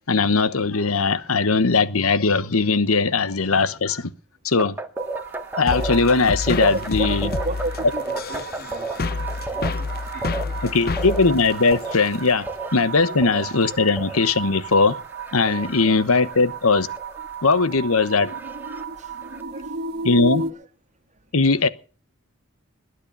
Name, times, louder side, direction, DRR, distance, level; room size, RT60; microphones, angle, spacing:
voice 1, 0.1-4.1 4.4-4.8 5.6-7.3 10.6-12.5 12.7-15.0 15.3-16.9 17.4-18.3 20.0-20.4 21.3-21.7, left 4 dB, 85° left, 1.1 m, -19 dB
sound 1, 4.6-19.4, right 2 dB, 10° right, 1.7 m, -35 dB
sound 2, 5.0-20.5, right 5 dB, 50° right, 1.9 m, -35 dB
sound 3, 5.7-12.3, left 3 dB, 45° left, 0.7 m, -29 dB
voice 2, 6.6-10.8 13.1-13.4 15.6-15.9 17.7-17.8 19.0-20.0 20.3-20.6, right 2 dB, 35° right, 2.3 m, -35 dB
21.5 x 9.9 x 5.4 m
head